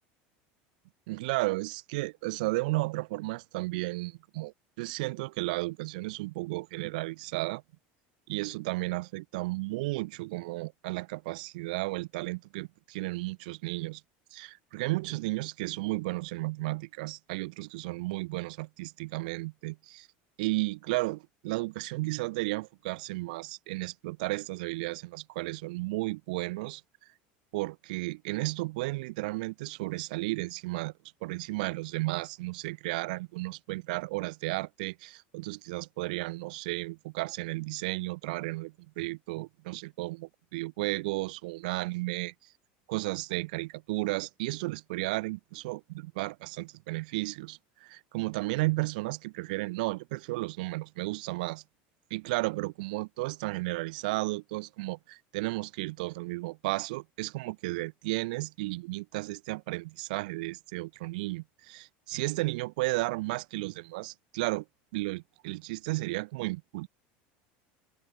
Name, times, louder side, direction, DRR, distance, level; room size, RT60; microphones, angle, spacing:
voice 1, 1.1-7.6 8.3-14.0 14.3-20.1 20.4-26.8 27.5-30.9 31.2-42.3 42.9-51.6 52.1-64.6 64.9-66.9, right 22 dB, 75° right, 0.7 m, -33 dB
cardioid pair, 180°, 5 cm